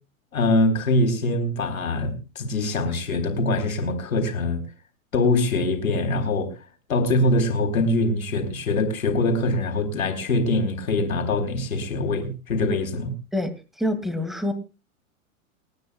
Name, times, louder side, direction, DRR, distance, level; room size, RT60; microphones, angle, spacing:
voice 1, 0.3-4.6 5.1-6.5 6.9-13.1, left 2 dB, 75° left, 4.0 m, -23 dB
voice 2, 13.8-14.5, left 1 dB, ahead, 2.2 m, -26 dB
29.0 x 9.7 x 2.3 m
hypercardioid pair, 105°, 42 cm